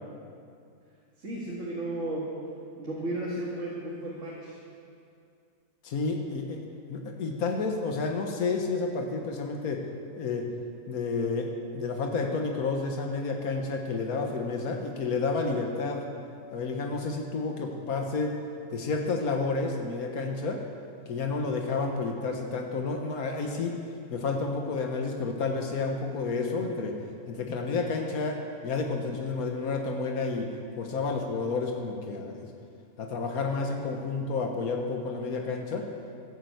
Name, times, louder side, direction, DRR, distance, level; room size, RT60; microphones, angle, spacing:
voice 1, 1.2-2.4 2.8-4.6, right 1 dB, 55° right, -6 dB, 2.6 m, -34 dB
voice 2, 5.8-6.6 6.9-9.8 10.1-10.5 10.9-16.0 16.5-18.4 18.7-20.6 21.1-23.7 24.1-27.0 27.3-30.5 30.8-32.3 33.0-35.9, left 4 dB, 85° left, 2 dB, 1.7 m, -30 dB
14.5 x 10.0 x 7.9 m, 2.4 s
omnidirectional pair, 1.5 m